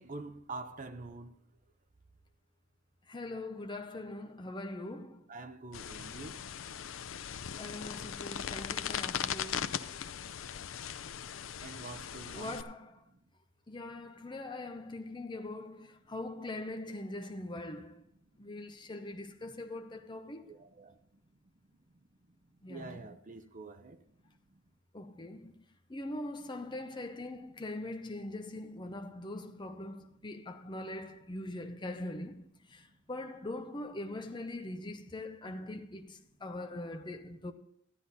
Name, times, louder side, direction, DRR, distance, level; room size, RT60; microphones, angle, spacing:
voice 1, 0.0-1.3 5.3-6.4 11.6-12.6 20.4-20.9 22.7-24.0, right 3 dB, 40° right, 0.8 m, -45 dB
voice 2, 3.1-5.2 7.6-9.8 12.3-13.0 13.7-18.0 18.4-20.5 22.6-23.0 24.9-25.6 25.9-37.5, left 2 dB, 25° left, 0.7 m, -42 dB
sound 1, 5.7-12.6, left 8 dB, 80° left, 0.5 m, -39 dB
13.5 x 9.7 x 4.1 m
head